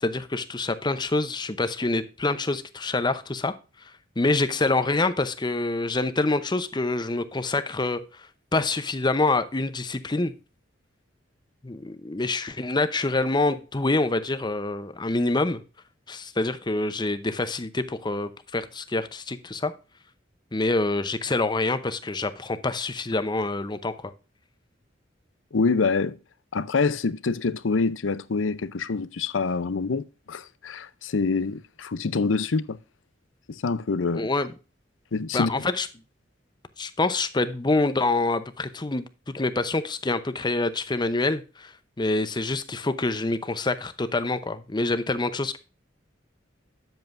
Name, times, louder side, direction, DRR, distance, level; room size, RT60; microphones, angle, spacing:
voice 1, 0.0-3.5 4.2-8.0 8.5-10.3 11.6-15.6 16.1-19.7 20.5-24.1 34.1-34.5 35.3-35.9 36.8-41.7 42.0-45.6, left 2 dB, 25° left, 0.7 m, -26 dB
voice 2, 25.5-26.2 26.5-32.8 33.5-34.3 35.1-35.5, left 4 dB, 90° left, 0.6 m, -26 dB
9.2 x 8.0 x 2.6 m
head